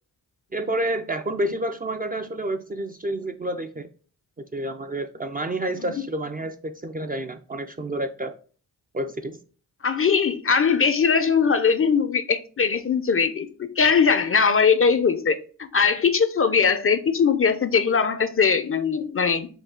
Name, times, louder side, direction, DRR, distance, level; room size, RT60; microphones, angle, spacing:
voice 1, 0.5-3.9 4.4-8.3 8.9-9.4, right 1 dB, 25° right, 0.4 m, -29 dB
voice 2, 9.8-19.5, left 6 dB, 35° left, 0.5 m, -21 dB
5.5 x 2.3 x 3.6 m
cardioid pair, 50°, 40 cm